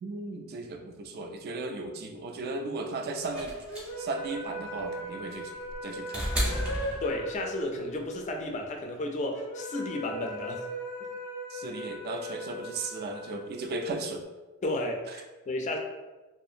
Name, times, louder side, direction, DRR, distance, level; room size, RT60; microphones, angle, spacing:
voice 1, 0.0-5.5 5.8-6.3 11.5-14.2, right 3 dB, 45° right, 4 dB, 0.3 m, -36 dB
sound 1, 3.3-7.6 8.8-8.9, equal, 5° right, 0.6 m, -33 dB
sound 2, 3.7-14.1, equal, 90° left, 0.5 m, -39 dB
voice 2, 7.0-10.7 14.6-15.8, left 1 dB, 35° left, 3 dB, 0.3 m, -33 dB
2.4 x 2.4 x 2.7 m, 1.2 s
head